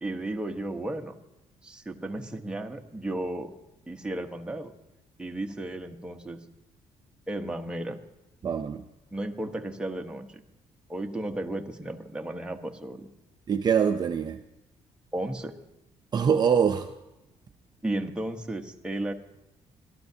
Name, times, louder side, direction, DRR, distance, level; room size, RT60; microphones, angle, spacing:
voice 1, 0.0-1.1 1.6-3.5 3.9-4.7 5.2-6.4 7.3-8.0 9.1-10.4 10.9-13.1 15.1-15.6 17.8-19.1, right 1 dB, 5° right, 3 dB, 1.0 m, -34 dB
voice 2, 8.4-8.8 13.5-14.4 16.1-16.9, right 7 dB, 35° right, 6 dB, 0.5 m, -24 dB
22.0 x 12.5 x 2.8 m, 0.94 s
cardioid pair, 120°, 12 cm